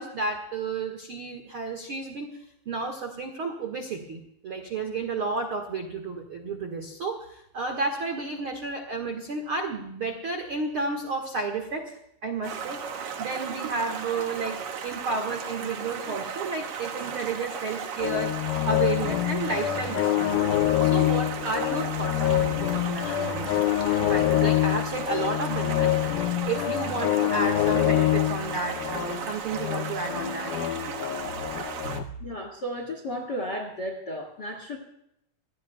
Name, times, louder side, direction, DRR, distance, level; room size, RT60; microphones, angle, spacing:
voice 1, 0.0-2.4 2.6-12.8 13.2-18.3 18.6-23.7 24.0-30.5 31.8-32.1, right 3 dB, 85° right, 4 dB, 1.1 m, -32 dB
Stream, 12.4-32.0, right 7 dB, 65° right, 2.0 m, -36 dB
sound 1, 18.0-32.0, left 15 dB, 85° left, 2.1 m, -26 dB
voice 2, 32.2-34.8, equal, 50° left, 3 dB, 1.2 m, -34 dB
25.5 x 17.5 x 2.3 m, 0.78 s
omnidirectional pair, 5.0 m